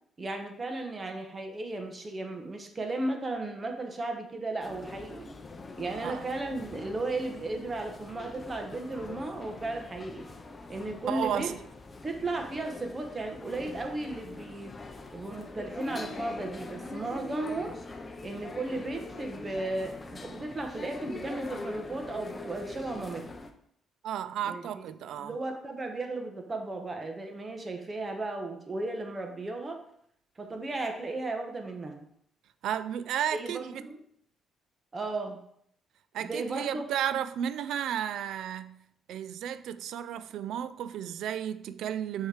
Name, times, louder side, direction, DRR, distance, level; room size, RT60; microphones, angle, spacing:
voice 1, 0.2-5.3 5.8-10.3 10.7-11.6 12.0-14.7 15.1-17.8 18.2-23.3 24.5-24.9 25.2-29.8 30.4-32.1 33.3-34.0 34.9-35.4 36.2-36.8, right 2 dB, 30° right, 1.1 m, -35 dB
sound 1, 4.6-23.5, left 3 dB, 30° left, 0.7 m, -43 dB
voice 2, 11.1-11.6 24.0-25.3 32.6-33.8 36.1-38.8 39.1-42.3, right 9 dB, 80° right, 0.3 m, -33 dB
6.3 x 3.2 x 4.8 m
cardioid pair, 90°, 0 cm